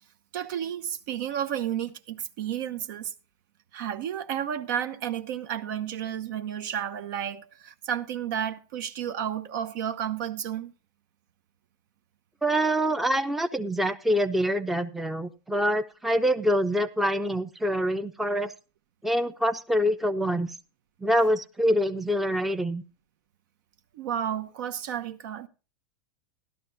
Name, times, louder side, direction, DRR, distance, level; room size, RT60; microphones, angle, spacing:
voice 1, 0.3-3.1 3.7-10.7 23.9-25.5, right 9 dB, 65° right, 1.0 m, -32 dB
voice 2, 12.4-18.5 19.0-20.5 21.0-22.8, equal, ahead, 0.5 m, -25 dB
14.5 x 12.0 x 2.7 m
supercardioid pair, 145°, 11 cm